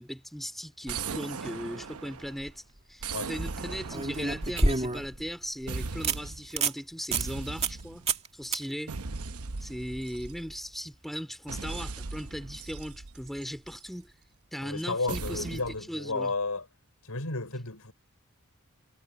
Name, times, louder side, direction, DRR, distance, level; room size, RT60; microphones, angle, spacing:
voice 1, 0.0-2.6 2.9-8.1 8.3-9.0 9.6-14.1 14.5-15.6 15.9-16.3, equal, ahead, 4.4 m, -38 dB
sound 1, 0.9-2.5 3.0-5.4 5.7-6.5 7.1-8.1 8.9-10.8 11.5-13.9 15.1-15.8, right 4 dB, 80° right, 0.9 m, -39 dB
sound 2, 2.2-2.5 3.9-5.2 5.6-5.7 6.0-6.2 6.5-6.8 7.1-7.3 7.6-7.8 8.1-8.3 8.5-8.6 11.7-11.8, right 3 dB, 30° right, 2.1 m, -28 dB
voice 2, 14.6-16.7 17.0-17.9, left 3 dB, 80° left, 5.5 m, -32 dB
head